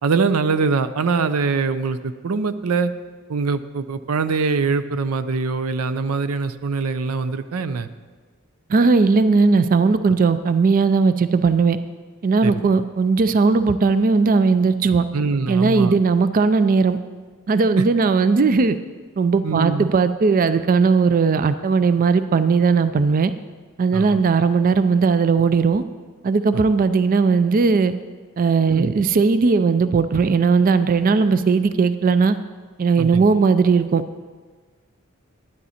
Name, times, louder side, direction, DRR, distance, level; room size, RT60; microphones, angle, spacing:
voice 1, 0.0-2.9 3.3-7.9 12.4-12.5 15.1-15.9 17.8-17.9 19.4-19.9 23.9-24.2 26.5-26.6 28.7-28.9 33.0-33.2, right 4 dB, 90° right, 12 dB, 0.5 m, -23 dB
voice 2, 8.7-11.8 12.2-15.1 15.5-17.0 17.5-18.8 19.2-23.3 23.8-25.8 26.2-27.9 28.4-32.4 32.8-34.0, right 4 dB, 40° right, 12 dB, 0.4 m, -17 dB
11.0 x 11.0 x 4.2 m, 1.4 s
head